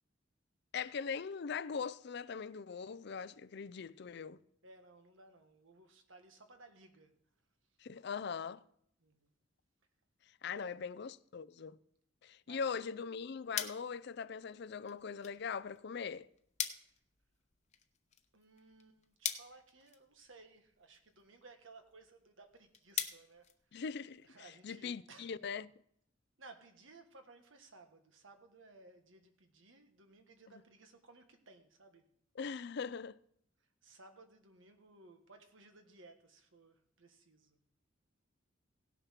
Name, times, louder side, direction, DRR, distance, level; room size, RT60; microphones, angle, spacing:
voice 1, 0.7-4.4 7.8-8.6 10.4-11.8 12.2-16.3 23.7-24.3 24.6-25.7 32.4-33.2, left 6 dB, 60° left, 0.4 m, -41 dB
voice 2, 4.6-7.1 9.0-9.3 10.5-10.8 12.5-13.0 16.7-16.9 18.3-23.8 24.2-25.3 26.4-32.0 33.8-37.6, right 3 dB, 80° right, 1.6 m, -59 dB
sound 1, 12.9-24.3, left 9 dB, 35° left, 0.9 m, -46 dB
17.0 x 6.8 x 5.9 m
head